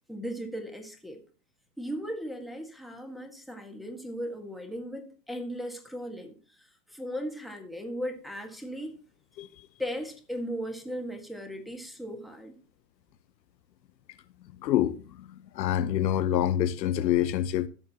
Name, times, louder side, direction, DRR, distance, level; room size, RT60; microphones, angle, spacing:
voice 1, 0.1-1.2 1.8-8.9 9.8-12.6, equal, ahead, 1.7 m, -37 dB
voice 2, 14.6-15.3 15.5-17.7, left 11 dB, 85° left, 0.8 m, -26 dB
15.0 x 6.5 x 2.9 m
hypercardioid pair, 110°, 49 cm